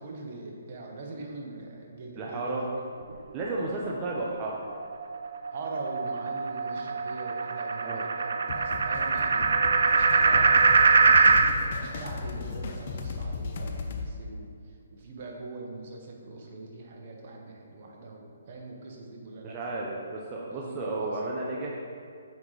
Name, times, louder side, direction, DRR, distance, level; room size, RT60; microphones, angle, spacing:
voice 1, 0.0-2.7 5.5-19.6 20.4-21.4, right 2 dB, 45° right, 0 dB, 1.1 m, -42 dB
voice 2, 2.2-2.7 3.3-4.6 7.8-8.1 19.4-21.8, right 2 dB, 20° right, -4 dB, 0.6 m, -33 dB
sound 1, 4.8-11.5, right 4 dB, 70° right, 0.4 m, -23 dB
sound 2, 8.5-14.1, left 4 dB, 50° left, 0.6 m, -36 dB
7.9 x 3.9 x 3.3 m, 2.3 s
hypercardioid pair, 155°, 0 cm